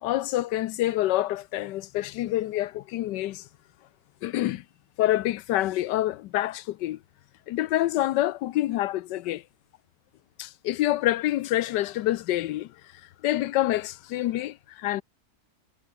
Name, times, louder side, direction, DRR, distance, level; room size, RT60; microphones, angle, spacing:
voice 1, 0.0-3.4 4.2-4.6 5.0-7.0 7.5-9.4 10.4-12.7 13.2-15.0, left 15 dB, 85° left, 1.3 m, -27 dB
omnidirectional pair, 1.8 m